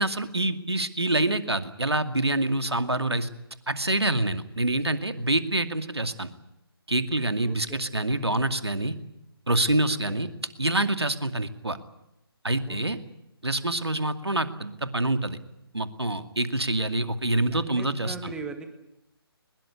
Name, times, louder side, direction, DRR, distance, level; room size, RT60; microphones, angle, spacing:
voice 1, 0.0-3.3 3.7-6.3 6.9-8.9 9.5-10.3 10.6-11.8 12.4-13.0 13.4-15.4 15.7-18.3, right 2 dB, 85° right, 9 dB, 2.4 m, -26 dB
voice 2, 7.4-7.8 10.1-10.2 12.7-13.0 17.5-18.8, right 4 dB, 5° right, 7 dB, 1.9 m, -40 dB
22.5 x 21.0 x 8.3 m, 0.85 s
figure-of-eight pair, 145°, 13 cm